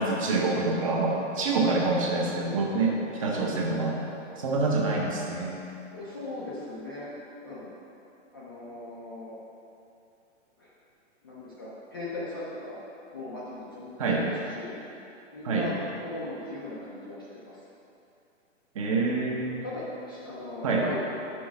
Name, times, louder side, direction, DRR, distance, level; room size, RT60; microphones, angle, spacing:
voice 1, 0.0-2.9 3.2-3.9 4.4-5.6 14.0-14.2 15.4-15.7 18.7-19.6 20.6-20.8, right 3 dB, 30° right, -2 dB, 0.8 m, -26 dB
voice 2, 5.9-7.1 7.4-7.7 8.3-9.4 10.6-10.7 11.2-12.8 13.1-14.7 15.3-17.6 19.3-21.0, left 1 dB, 20° left, -9 dB, 0.4 m, -38 dB
6.2 x 5.1 x 5.8 m, 2.8 s
hypercardioid pair, 165°, 37 cm